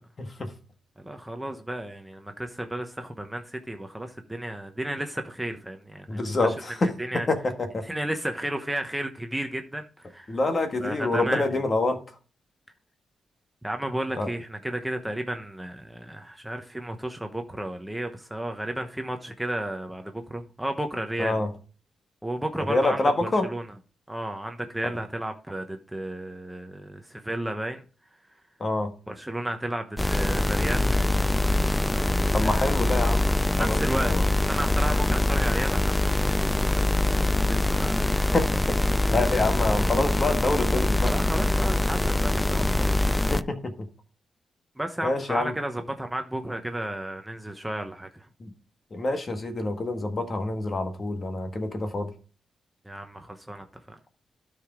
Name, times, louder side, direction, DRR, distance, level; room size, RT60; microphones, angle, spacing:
voice 1, 0.2-0.5 6.1-7.8 10.3-12.0 14.2-14.3 21.2-21.5 22.7-23.5 28.6-28.9 32.3-33.2 33.6-34.3 38.0-41.1 43.3-43.9 45.0-45.5 48.4-48.5 48.9-52.1, left 2 dB, 35° left, 1.6 m, -27 dB
voice 2, 1.0-6.5 6.8-7.3 7.8-10.4 10.8-11.6 13.6-21.4 22.2-23.7 24.1-27.8 29.1-30.9 32.3-32.6 33.5-38.3 39.2-39.3 41.0-43.1 44.8-48.3 52.8-54.0, right 1 dB, 5° right, 0.9 m, -33 dB
sound 1, 30.0-43.4, left 1 dB, 10° left, 0.3 m, -24 dB
12.5 x 4.9 x 3.7 m
cardioid pair, 100°, 0 cm